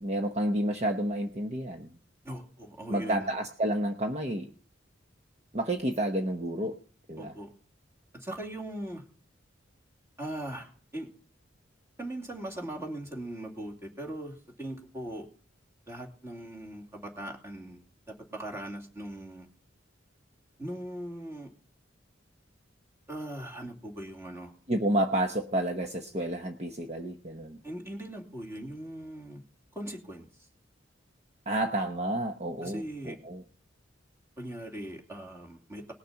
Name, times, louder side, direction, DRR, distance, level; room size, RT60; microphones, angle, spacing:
voice 1, 0.0-1.9 2.9-4.5 5.5-6.8 7.1-7.3 24.7-27.6 31.5-33.4, right 1 dB, 35° right, 4 dB, 1.0 m, -30 dB
voice 2, 2.2-3.3 7.2-7.5 8.1-9.0 10.2-11.1 12.0-15.3 15.9-17.8 18.1-19.5 20.6-21.5 23.1-24.5 27.6-29.4 29.7-30.2 32.6-33.2 34.4-35.9, right 1 dB, 15° right, -1 dB, 2.8 m, -40 dB
19.5 x 6.7 x 5.8 m, 0.43 s
head